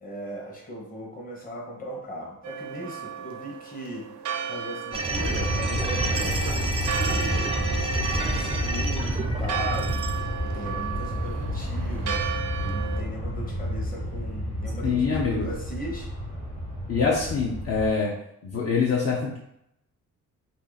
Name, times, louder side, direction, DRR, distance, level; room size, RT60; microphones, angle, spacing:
voice 1, 0.0-4.1 4.5-7.6 8.1-12.3 12.6-16.1, equal, 30° left, -2 dB, 1.1 m, -38 dB
Church bell, 2.4-13.0, right 8 dB, 85° right, 0.5 m, -35 dB
sound 1, 4.9-10.1, right 2 dB, 20° right, 0.4 m, -30 dB
Aircraft, 5.1-17.9, equal, 80° left, 1.5 m, -30 dB
voice 2, 14.8-15.5 16.9-18.1 18.4-19.4, left 5 dB, 55° left, -4 dB, 0.7 m, -24 dB
2.8 x 2.8 x 3.9 m, 0.79 s
cardioid pair, 110°, 29 cm